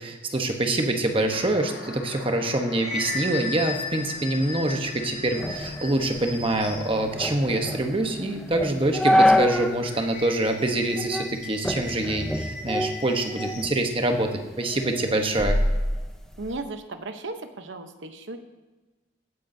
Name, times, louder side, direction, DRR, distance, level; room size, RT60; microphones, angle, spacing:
voice 1, 0.0-15.6, right 1 dB, 25° right, 4 dB, 1.0 m, -25 dB
sound 1, 1.3-12.3, left 2 dB, 60° left, 1.2 m, -44 dB
sound 2, 2.4-7.1 9.8-13.8, left 3 dB, 30° left, 3.0 m, -36 dB
sound 3, 5.4-9.8 10.2-10.3 10.9-11.3 11.6-13.7 14.1-16.6, left 1 dB, 5° left, 0.5 m, -26 dB
voice 2, 16.4-18.4, right 2 dB, 70° right, 8 dB, 0.9 m, -35 dB
16.5 x 9.1 x 2.7 m, 1.2 s
head